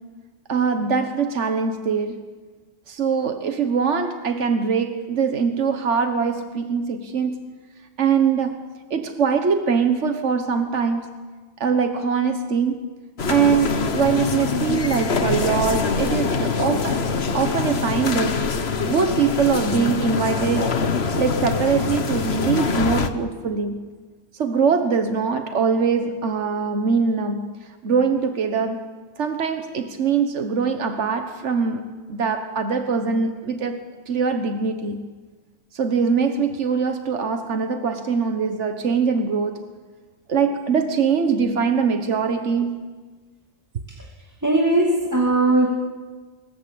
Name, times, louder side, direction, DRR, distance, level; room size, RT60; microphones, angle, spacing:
voice 1, 0.5-2.2 2.9-7.5 8.0-8.6 8.9-11.1 11.6-12.9 13.3-17.0 17.3-18.4 18.9-20.7 21.2-23.9 24.3-27.5 27.8-28.8 29.2-33.8 34.1-35.1 35.7-39.6 40.3-42.8, right 5 dB, 85° right, 7 dB, 1.6 m, -22 dB
sound 1, 13.2-23.1, left 4 dB, 60° left, 1.5 m, -24 dB
voice 2, 44.4-45.7, right 2 dB, 15° right, -1 dB, 2.5 m, -19 dB
25.0 x 22.0 x 8.6 m, 1.4 s
omnidirectional pair, 1.2 m